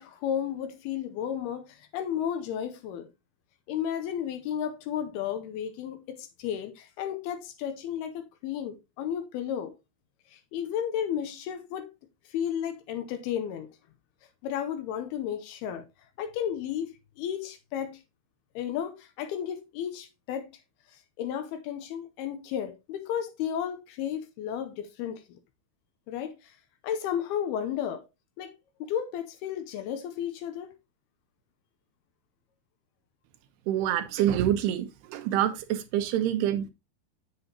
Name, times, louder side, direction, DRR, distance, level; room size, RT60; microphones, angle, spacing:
voice 1, 0.0-3.1 3.7-9.7 10.3-11.9 12.3-13.7 14.4-15.8 16.2-18.0 18.6-20.5 20.9-25.4 26.1-26.6 26.8-28.1 28.4-28.5 28.8-30.7, left 9 dB, 85° left, 2.7 m, -33 dB
voice 2, 33.7-36.7, right 11 dB, 85° right, 2.9 m, -26 dB
7.8 x 7.7 x 2.9 m
omnidirectional pair, 4.6 m